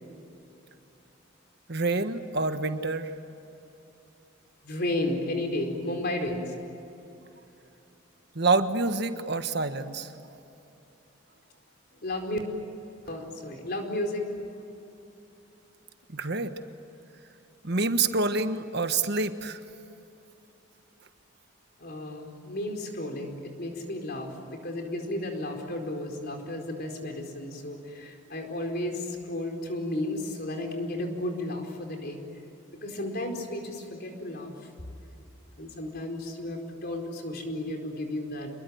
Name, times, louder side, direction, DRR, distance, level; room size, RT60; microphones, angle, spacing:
voice 1, 1.7-3.1 8.3-10.1 16.1-16.5 17.6-19.6, right 3 dB, 55° right, 8 dB, 1.4 m, -27 dB
voice 2, 4.6-6.5 12.0-12.4 13.1-14.2 21.8-32.2 32.8-34.7 35.6-38.5, left 1 dB, 50° left, 3 dB, 4.5 m, -33 dB
28.5 x 21.5 x 9.5 m, 2.8 s
head